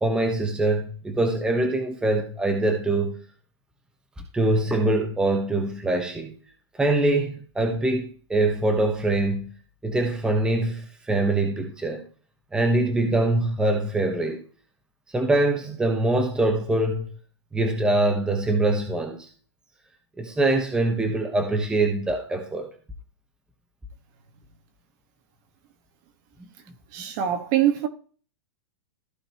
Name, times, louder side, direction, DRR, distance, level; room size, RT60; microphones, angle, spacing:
voice 1, 0.0-3.2 4.3-6.4 6.8-9.5 9.8-12.1 12.5-14.4 15.1-17.1 17.5-19.3 20.2-22.7, right 2 dB, 5° right, 1.0 m, -23 dB
voice 2, 26.9-27.9, right 11 dB, 40° right, 1.5 m, -23 dB
14.5 x 5.3 x 2.9 m
supercardioid pair, 155°, 15 cm